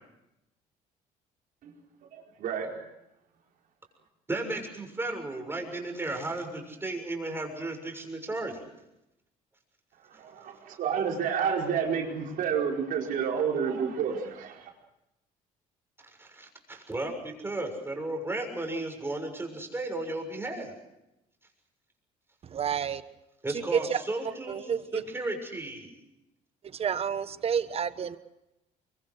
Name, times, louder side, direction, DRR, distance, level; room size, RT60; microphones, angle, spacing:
voice 1, 2.1-2.7 10.1-14.7, right 7 dB, 65° right, 0 dB, 4.9 m, -30 dB
voice 2, 4.3-8.6 16.2-20.7 23.4-24.6 24.9-26.0, right 2 dB, 15° right, 3 dB, 6.8 m, -34 dB
voice 3, 22.4-23.0 23.5-25.0 26.6-28.2, right 7 dB, 40° right, 13 dB, 1.3 m, -30 dB
24.0 x 24.0 x 6.5 m, 0.88 s
cardioid pair, 95°, 15 cm